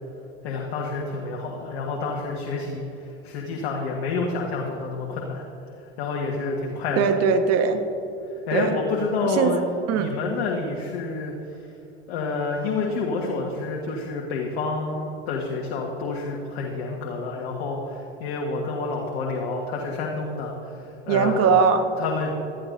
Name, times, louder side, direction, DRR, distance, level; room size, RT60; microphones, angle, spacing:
voice 1, 0.4-5.4 6.0-7.1 8.5-9.6 9.9-11.7 12.1-21.5 22.0-22.3, left 3 dB, 70° left, 0 dB, 1.6 m, -28 dB
voice 2, 7.0-7.8 8.5-8.7 9.4-9.5 9.9-10.1 21.1-21.8, right 6 dB, 50° right, 7 dB, 1.3 m, -20 dB
18.0 x 13.0 x 2.6 m, 3.0 s
hypercardioid pair, 95°, 32 cm